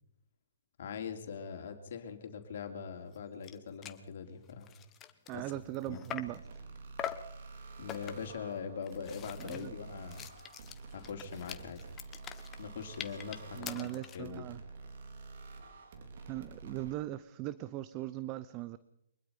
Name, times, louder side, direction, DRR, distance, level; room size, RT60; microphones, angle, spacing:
voice 1, 0.8-4.7 5.3-5.4 5.9-6.0 7.8-10.2 10.9-11.8 12.6-14.4, left 6 dB, 55° left, 5 dB, 3.4 m, -42 dB
sound 1, 3.1-3.2 3.4-3.6 3.8-4.0 4.5-6.4 7.0-7.3 7.9-8.4 8.8-14.3, left 10 dB, 20° left, 1.4 m, -44 dB
voice 2, 5.3-6.4 9.4-9.8 13.5-14.6 16.3-18.8, right 16 dB, 30° right, 16 dB, 0.8 m, -39 dB
sound 2, 6.3-16.9, right 3 dB, 55° right, 4.0 m, -49 dB
24.0 x 21.0 x 5.4 m, 0.79 s
hypercardioid pair, 135°, 0 cm